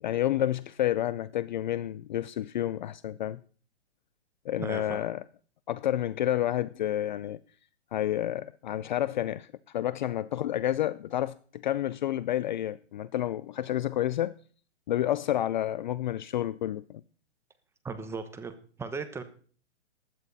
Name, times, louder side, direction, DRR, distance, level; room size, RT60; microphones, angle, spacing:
voice 1, 0.0-3.4 4.5-5.2 5.7-7.4 7.9-9.5 9.7-14.3 14.9-17.0, left 12 dB, 45° left, 0.5 m, -29 dB
voice 2, 4.6-5.1 17.8-18.5 18.8-19.2, right 4 dB, 5° right, 1.1 m, -36 dB
15.5 x 11.0 x 4.1 m
hypercardioid pair, 135°, 35 cm